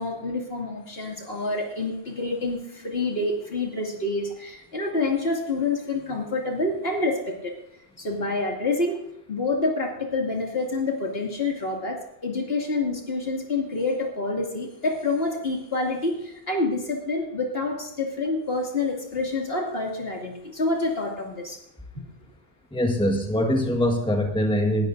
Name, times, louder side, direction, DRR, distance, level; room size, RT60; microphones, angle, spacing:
voice 1, 0.0-7.5 8.0-9.0 9.3-21.6 21.9-22.1, left 3 dB, 60° left, 0 dB, 2.8 m, -27 dB
voice 2, 22.7-24.9, equal, 5° left, 2 dB, 1.5 m, -23 dB
19.5 x 12.5 x 2.6 m, 0.80 s
omnidirectional pair, 1.1 m